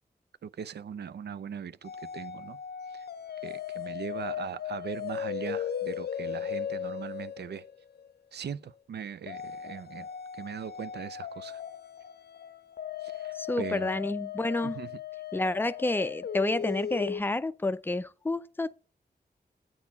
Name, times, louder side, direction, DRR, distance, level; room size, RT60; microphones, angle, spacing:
voice 1, 0.4-2.6 3.4-7.6 8.3-10.1 10.4-11.6 13.1-14.0 14.6-14.9, right 7 dB, 85° right, 0.5 m, -39 dB
sound 1, 1.8-8.1 9.3-17.2, left 9 dB, 70° left, 0.5 m, -37 dB
voice 2, 13.3-14.8 15.3-18.7, left 2 dB, 10° left, 0.4 m, -29 dB
8.6 x 4.3 x 6.7 m
wide cardioid pair, 125°, 17 cm